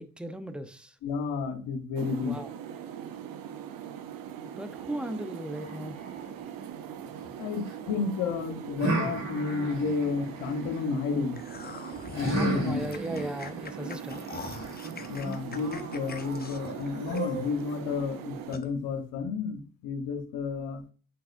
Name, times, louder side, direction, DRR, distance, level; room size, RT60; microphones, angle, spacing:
voice 1, 0.0-1.0 2.2-2.5 4.4-6.0 12.4-14.4, right 1 dB, 5° right, 0.8 m, -37 dB
voice 2, 1.0-2.4 7.4-11.4 12.2-12.8 13.8-13.9 15.1-20.8, left 5 dB, 85° left, 1.2 m, -31 dB
sound 1, 2.0-18.6, right 9 dB, 75° right, 0.8 m, -41 dB
sound 2, 5.5-7.8 8.8-10.9 12.1-17.7, right 2 dB, 55° right, 3.4 m, -36 dB
sound 3, 11.3-17.6 18.0-18.1 18.5-18.7, left 4 dB, 25° left, 0.9 m, -42 dB
7.7 x 4.7 x 2.6 m
supercardioid pair, 65°, 34 cm